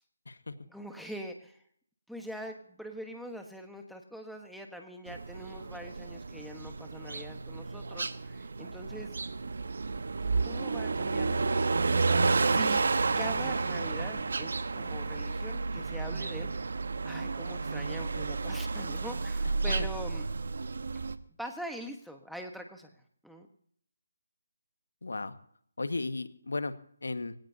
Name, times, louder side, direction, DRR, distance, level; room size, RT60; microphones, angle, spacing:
voice 1, 0.7-1.6 2.1-9.2 10.4-11.5 12.4-12.9 13.1-16.7 17.0-20.3 21.4-22.9 23.2-23.5, equal, ahead, 3 dB, 1.4 m, -43 dB
sound 1, 5.1-21.1, right 4 dB, 65° right, 1.2 m, -31 dB
voice 2, 25.0-25.3 25.8-26.7 27.0-27.3, left 3 dB, 80° left, 10 dB, 1.6 m, -35 dB
23.5 x 17.5 x 2.9 m, 0.62 s
figure-of-eight pair, 160°, 0 cm